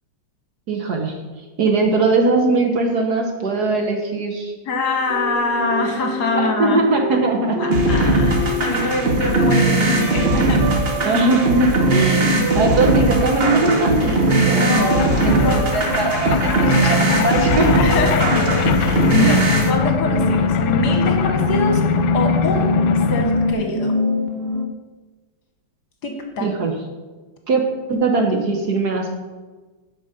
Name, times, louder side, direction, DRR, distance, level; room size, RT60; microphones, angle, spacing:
voice 1, 0.7-1.2 1.6-4.5 6.6-7.6 11.0-15.4 15.7-17.7 19.2-19.5 26.4-26.7 27.5-27.6 27.9-29.2, right 3 dB, 55° right, 3 dB, 1.4 m, -20 dB
voice 2, 4.7-6.8 7.6-11.1 14.4-15.8 17.8-21.8 22.1-22.7 23.1-23.9 26.0-26.5, left 2 dB, 55° left, 3 dB, 1.6 m, -24 dB
sound 1, 5.1-24.6, equal, 85° right, 0.5 m, -26 dB
sound 2, 7.7-19.7, right 2 dB, 35° right, 1.1 m, -19 dB
sound 3, 12.4-12.5 12.7-23.5, left 8 dB, 75° left, 1.4 m, -23 dB
8.5 x 5.6 x 6.7 m, 1.3 s
omnidirectional pair, 2.3 m